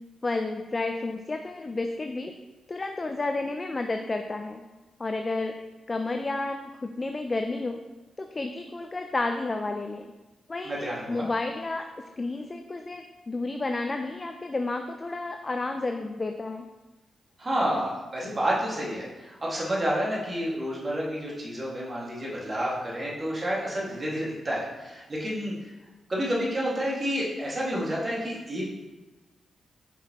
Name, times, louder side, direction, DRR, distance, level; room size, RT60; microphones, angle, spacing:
voice 1, 0.2-2.3 2.7-4.6 5.0-5.5 5.9-7.8 8.2-10.0 10.5-11.9 12.2-16.7, left 2 dB, 30° left, 5 dB, 0.4 m, -31 dB
voice 2, 10.6-11.3 17.4-25.7 26.1-28.7, equal, 30° right, -5 dB, 1.9 m, -29 dB
5.6 x 5.6 x 3.0 m, 1.2 s
cardioid pair, 90°, 0 cm